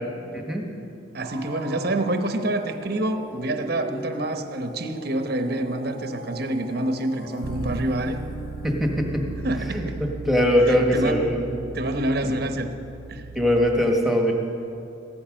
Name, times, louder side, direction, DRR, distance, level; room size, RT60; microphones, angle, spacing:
voice 1, 0.3-0.7 8.6-9.3 9.7-11.6 13.3-14.3, equal, ahead, 1 dB, 1.5 m, -21 dB
voice 2, 1.1-8.2 9.4-10.0 10.7-11.2 11.7-12.7 13.1-13.2, right 1 dB, 50° right, 7 dB, 0.9 m, -27 dB
sound 1, 1.2-11.0, right 1 dB, 45° left, 2.2 m, -41 dB
Bass guitar, 7.4-13.7, right 3 dB, 70° right, 0.7 m, -36 dB
16.0 x 13.5 x 6.3 m, 2.7 s
head